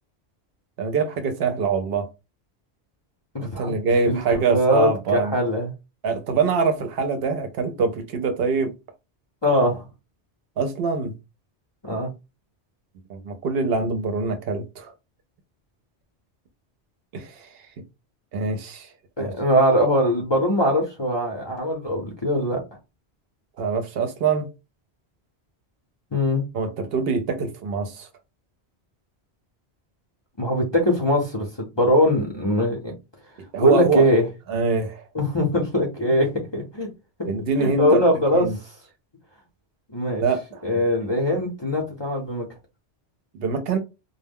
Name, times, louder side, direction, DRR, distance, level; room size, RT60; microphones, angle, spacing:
voice 1, 0.8-2.1 3.4-5.3 6.0-8.7 10.6-11.1 13.1-14.9 17.1-17.6 18.3-18.9 19.2-19.3 23.6-24.5 26.5-28.1 33.5-34.1 34.5-35.1 37.2-38.0 38.3-38.6 40.2-40.8 43.3-43.8, right 4 dB, 65° right, 0.7 m, -24 dB
voice 2, 3.3-3.7 4.1-5.7 9.4-9.8 11.8-12.1 19.2-22.6 26.1-26.4 30.4-32.9 33.6-34.2 35.1-36.9 37.6-38.5 39.9-40.2 40.6-42.5, equal, 30° left, 0.5 m, -21 dB
2.1 x 2.0 x 3.4 m
omnidirectional pair, 1.1 m